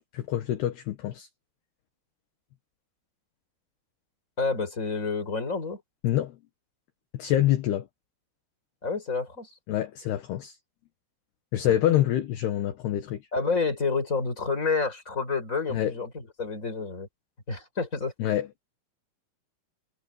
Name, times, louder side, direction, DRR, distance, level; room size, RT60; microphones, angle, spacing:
voice 1, 0.1-1.3 6.0-6.4 7.1-7.9 9.7-10.6 11.5-13.2 15.7-15.9 18.2-18.5, left 12 dB, 70° left, 3.1 m, -26 dB
voice 2, 4.4-5.8 8.8-9.5 11.6-12.0 13.3-17.1 17.5-18.1, left 4 dB, 15° left, 5.7 m, -29 dB
omnidirectional pair, 5.5 m